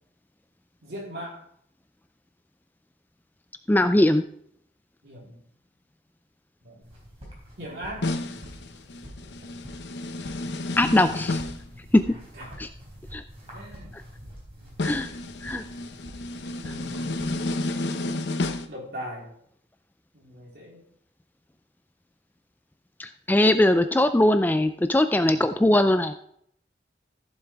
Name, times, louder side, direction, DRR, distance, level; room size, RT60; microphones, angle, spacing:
voice 1, 0.8-1.4 5.0-5.4 6.6-6.8 7.6-8.1 8.5-8.6 12.1-12.5 13.5-14.0 14.6-14.8 16.6-17.2 18.7-19.3 20.1-20.8 25.1-25.5, equal, 65° right, -4 dB, 3.9 m, -40 dB
voice 2, 3.7-4.2 10.8-11.4 11.9-12.0 12.6-12.7 13.1-13.2 14.8-15.1 15.4-15.6 23.0-26.1, left 1 dB, 10° left, 10 dB, 0.3 m, -20 dB
sound 1, 6.8-17.7, equal, 35° right, 4.0 m, -46 dB
sound 2, 8.0-11.7 14.8-18.7, left 2 dB, 70° left, 0.8 m, -31 dB
15.0 x 7.2 x 3.4 m, 0.68 s
head